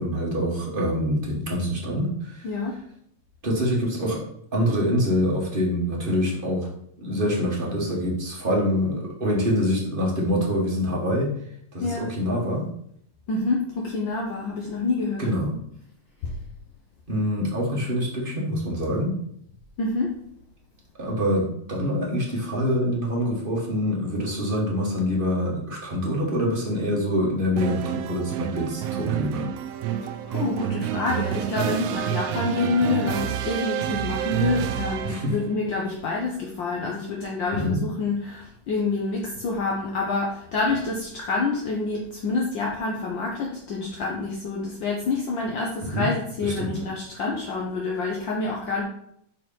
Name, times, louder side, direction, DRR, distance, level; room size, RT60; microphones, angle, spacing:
voice 1, 0.0-2.5 3.4-4.2 4.5-6.7 7.0-11.3 11.7-12.7 15.2-15.5 17.1-19.2 21.0-29.5 35.0-35.3 37.5-37.8 45.9-46.1 46.4-46.7, equal, 30° right, -3 dB, 1.1 m, -25 dB
voice 2, 2.4-2.8 11.8-12.1 13.3-15.3 16.2-16.3 19.8-20.2 30.0-48.8, left 3 dB, 65° left, -1 dB, 1.2 m, -27 dB
sound 1, 27.6-35.4, right 10 dB, 85° right, 1.4 m, -28 dB
6.0 x 4.6 x 5.6 m, 0.70 s
omnidirectional pair, 3.3 m